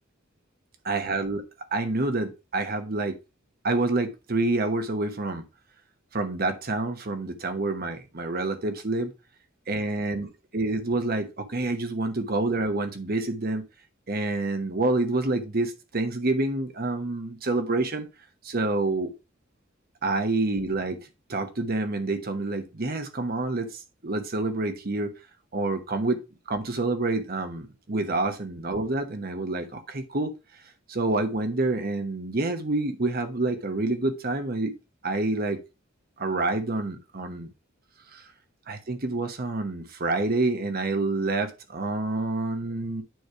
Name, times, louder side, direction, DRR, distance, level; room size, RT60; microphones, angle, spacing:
voice 1, 0.8-1.4 1.7-3.2 3.6-5.4 6.1-9.1 9.7-13.6 14.1-18.1 18.4-19.1 20.0-21.0 21.3-25.1 25.5-26.2 26.5-30.3 30.9-34.7 35.0-35.6 36.2-37.5 38.1-38.3 38.7-43.0, right 2 dB, 50° right, 1.0 m, -27 dB
9.3 x 3.3 x 4.6 m
head